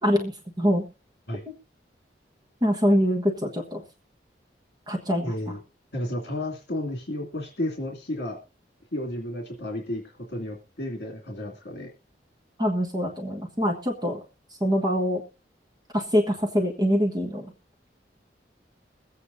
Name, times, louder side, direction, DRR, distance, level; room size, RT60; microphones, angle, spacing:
voice 1, 0.0-0.9 2.6-3.8 4.9-5.6 12.6-14.2 14.6-15.2 15.9-17.5, equal, 25° right, 2 dB, 1.3 m, -24 dB
voice 2, 5.2-5.6 5.9-8.4 8.9-11.9, left 1 dB, 65° left, 0 dB, 2.4 m, -32 dB
22.5 x 8.4 x 2.6 m, 0.30 s
head